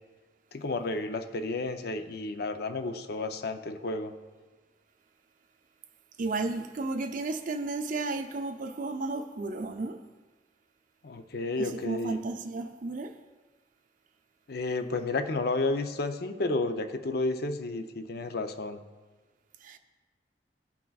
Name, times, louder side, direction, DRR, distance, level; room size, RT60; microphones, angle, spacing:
voice 1, 0.5-4.1 11.0-12.2 14.5-18.8, left 2 dB, 60° left, 8 dB, 0.6 m, -31 dB
voice 2, 6.2-10.0 11.6-13.2 19.6-19.8, right 3 dB, 50° right, 7 dB, 0.5 m, -33 dB
16.0 x 5.9 x 2.3 m, 1.3 s
head